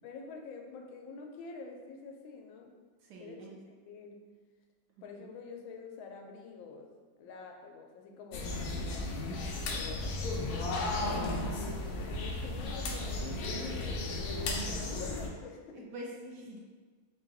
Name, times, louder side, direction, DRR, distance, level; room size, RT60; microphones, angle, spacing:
voice 1, 0.0-2.8 3.2-4.2 5.0-6.9 7.2-10.9 12.0-14.0 14.5-15.9, left 4 dB, 90° left, 2 dB, 1.4 m, -47 dB
voice 2, 3.0-3.6 5.2-5.3 11.3-11.5 15.7-16.6, right 1 dB, 70° right, -1 dB, 1.0 m, -46 dB
sound 1, 8.3-15.3, left 2 dB, 75° left, 0.9 m, -34 dB
4.6 x 2.3 x 3.8 m, 1.4 s
omnidirectional pair, 2.1 m